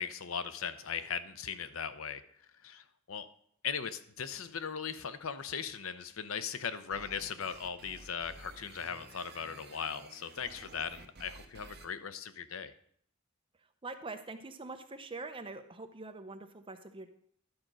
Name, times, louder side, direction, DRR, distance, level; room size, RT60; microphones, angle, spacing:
voice 1, 0.0-2.2 2.6-3.3 3.6-12.7, left 7 dB, 75° left, 12 dB, 0.7 m, -38 dB
sound 1, 6.9-11.9, right 3 dB, 50° right, 1.0 m, -53 dB
voice 2, 13.8-17.1, right 3 dB, 25° right, 6 dB, 0.8 m, -44 dB
11.5 x 5.1 x 6.2 m, 0.65 s
head